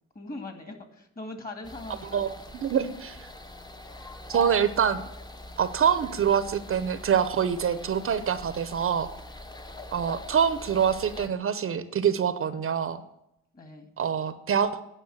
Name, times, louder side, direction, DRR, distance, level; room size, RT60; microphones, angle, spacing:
voice 1, 0.1-2.4 13.5-13.9, left 2 dB, 30° left, 5 dB, 2.0 m, -40 dB
sound 1, 1.6-11.3, equal, 15° left, 0.8 m, -43 dB
voice 2, 2.6-3.3 4.3-5.0 5.6-9.1 9.9-13.0 14.0-14.7, right 8 dB, 45° right, 12 dB, 0.7 m, -25 dB
9.8 x 5.4 x 7.7 m, 0.81 s
cardioid pair, 90°, 30 cm